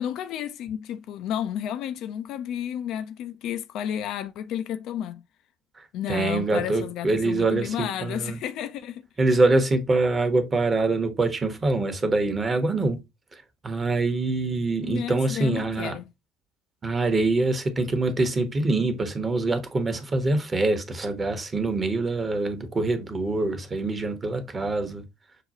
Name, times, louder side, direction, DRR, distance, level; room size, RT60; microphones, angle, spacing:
voice 1, 0.0-5.2 5.9-9.0 14.8-16.1, left 10 dB, 55° left, 0.3 m, -32 dB
voice 2, 6.1-8.4 9.2-13.0 13.6-15.9 16.8-25.0, right 2 dB, 25° right, 0.9 m, -24 dB
6.6 x 2.3 x 2.7 m
figure-of-eight pair, 55°, 0 cm